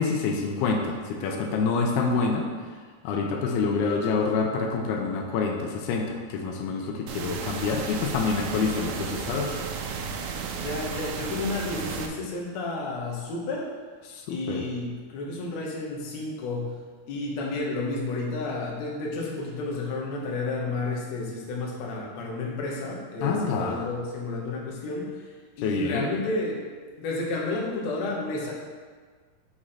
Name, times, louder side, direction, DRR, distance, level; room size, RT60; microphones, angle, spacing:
voice 1, 0.0-2.5 3.0-9.5 14.1-14.6 23.2-23.8 25.6-26.1, left 4 dB, 80° left, 1 dB, 2.6 m, -27 dB
sound 1, 7.1-12.1, right 6 dB, 85° right, 2.7 m, -33 dB
voice 2, 10.6-13.7 14.3-16.8 17.1-25.2 25.6-28.5, left 2 dB, 65° left, -2 dB, 1.7 m, -31 dB
6.3 x 5.0 x 5.7 m, 1.5 s
omnidirectional pair, 4.7 m